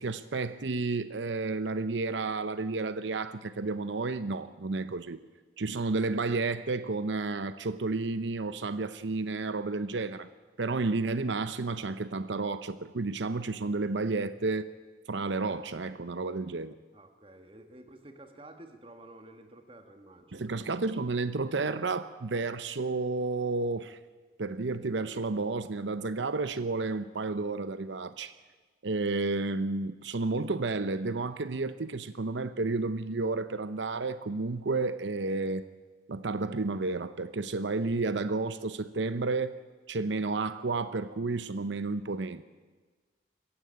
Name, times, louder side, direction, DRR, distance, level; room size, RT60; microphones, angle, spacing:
voice 1, 0.0-5.2 5.6-10.3 10.6-14.7 15.1-16.7 20.3-24.0 24.4-28.3 28.8-35.7 36.1-39.6 39.9-42.4, right 3 dB, 80° right, 0.7 m, -31 dB
voice 2, 16.9-20.9, right 1 dB, 30° right, 1.7 m, -51 dB
21.5 x 16.0 x 8.8 m
head